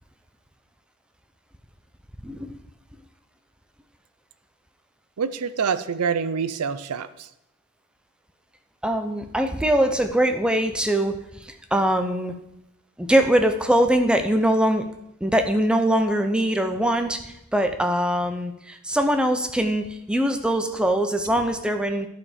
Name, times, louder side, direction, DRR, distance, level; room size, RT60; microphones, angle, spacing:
voice 1, 5.2-7.3, right 6 dB, 80° right, 13 dB, 0.5 m, -26 dB
voice 2, 8.8-12.3 13.0-14.8 15.2-22.1, right 1 dB, 5° right, 6 dB, 0.5 m, -22 dB
11.5 x 4.3 x 4.9 m, 0.82 s
head